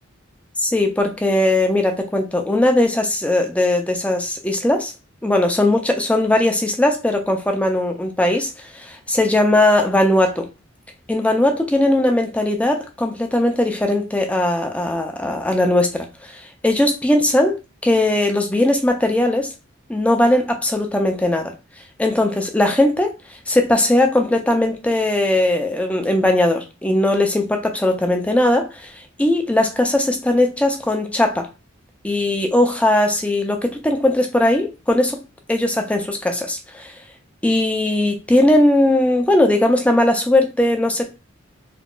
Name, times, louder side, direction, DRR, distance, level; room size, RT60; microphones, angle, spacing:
voice 1, 0.6-4.9 5.2-10.5 11.1-17.6 17.8-19.5 19.9-21.6 22.0-31.5 32.0-35.2 35.5-37.0 37.4-41.1, left 1 dB, 5° left, 0.4 m, -19 dB
3.6 x 2.0 x 2.4 m
head